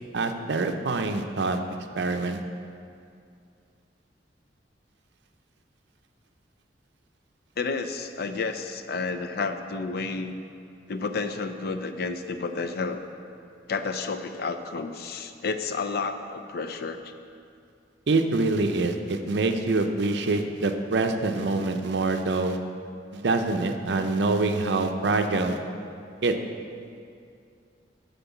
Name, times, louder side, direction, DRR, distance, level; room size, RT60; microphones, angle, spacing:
voice 1, 0.1-1.6 2.0-2.4 18.1-22.6 23.1-25.6 26.2-26.3, right 3 dB, 65° right, 6 dB, 0.6 m, -25 dB
voice 2, 7.6-10.3 10.9-13.0 13.7-17.1, left 4 dB, 60° left, 8 dB, 0.5 m, -31 dB
9.3 x 3.9 x 7.1 m, 2.4 s
head